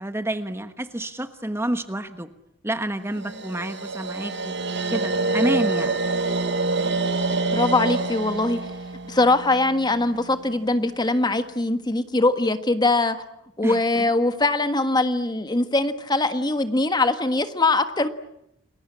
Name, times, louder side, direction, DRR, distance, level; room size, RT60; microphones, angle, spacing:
voice 1, 0.0-2.3 2.6-4.5 4.9-6.0 13.6-14.0, right 1 dB, 15° right, 9 dB, 1.2 m, -28 dB
sound 1, 3.2-10.3, right 3 dB, 65° right, 1.6 m, -26 dB
voice 2, 7.5-8.6 9.0-13.2 13.6-18.1, left 2 dB, 20° left, 9 dB, 1.5 m, -22 dB
30.0 x 21.5 x 8.6 m, 0.80 s
head